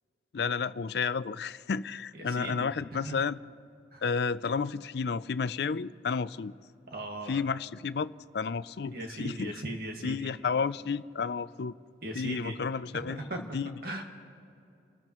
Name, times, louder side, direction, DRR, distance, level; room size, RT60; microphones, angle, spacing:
voice 1, 0.3-3.4 4.0-6.5 7.3-9.6 10.0-11.7 12.1-13.7, left 5 dB, 60° left, 0.4 m, -32 dB
voice 2, 2.2-2.7 3.0-3.2 3.9-4.0 6.9-7.4 8.9-10.3 12.0-12.6 12.9-13.4 13.8-14.0, right 1 dB, 55° right, 1.9 m, -38 dB
30.0 x 14.5 x 3.1 m
head